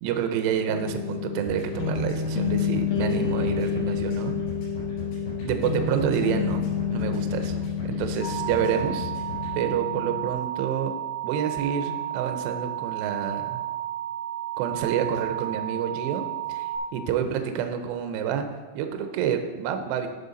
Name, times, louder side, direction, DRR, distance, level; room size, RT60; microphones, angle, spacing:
voice 1, 0.0-4.4 5.4-9.1 9.5-10.9 11.2-13.6 14.6-18.5 18.7-20.1, right 8 dB, 85° right, 6 dB, 2.4 m, -28 dB
sound 1, 0.7-10.3, left 6 dB, 80° left, 3.3 m, -29 dB
sound 2, 1.4-9.5, left 4 dB, 65° left, 5.8 m, -38 dB
sound 3, 8.2-16.8, right 12 dB, 65° right, 0.4 m, -32 dB
13.5 x 5.7 x 4.0 m, 1.3 s
omnidirectional pair, 5.9 m